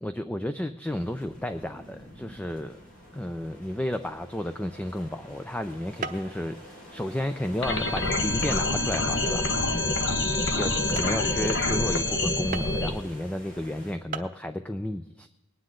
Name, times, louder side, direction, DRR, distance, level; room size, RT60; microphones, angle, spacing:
voice 1, 0.0-2.8 3.1-6.6 6.9-9.5 10.5-15.3, left 1 dB, 5° left, 9 dB, 0.4 m, -32 dB
sound 1, 0.9-13.9, equal, 90° left, 4.9 m, -47 dB
sound 2, 6.0-6.4 6.8-7.2 7.8-7.9 8.5-8.7 9.3-9.4 10.0-10.1 10.6-10.7 11.0-11.2 12.5-12.9 13.8-13.9 14.1-14.4, right 5 dB, 40° right, 0.7 m, -37 dB
sound 3, 7.6-12.9, left 2 dB, 60° left, 1.4 m, -26 dB
20.0 x 9.6 x 3.8 m, 1.0 s
head